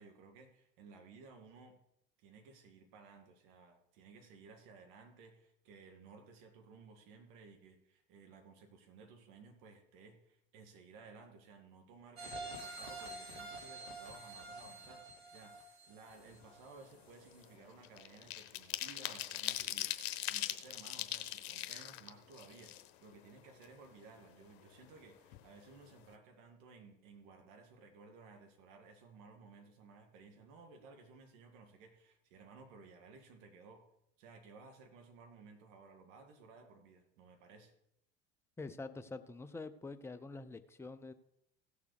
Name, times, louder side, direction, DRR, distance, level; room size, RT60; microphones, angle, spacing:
voice 1, 0.0-1.8 2.2-20.0 20.3-22.8 23.0-33.8 34.2-37.7, right 4 dB, 60° right, 4 dB, 2.3 m, -57 dB
sound 1, 12.2-16.9 17.3-17.4, right 2 dB, 90° right, 1.9 m, -48 dB
sound 2, 16.2-16.5 16.8-23.3 23.6-23.7 24.0-25.0 25.3-25.5 25.8-26.1, left 14 dB, 60° left, 1.0 m, -41 dB
voice 2, 38.6-41.1, left 3 dB, 10° left, 9 dB, 0.7 m, -46 dB
16.0 x 6.9 x 4.8 m, 0.79 s
figure-of-eight pair, 70°, 30 cm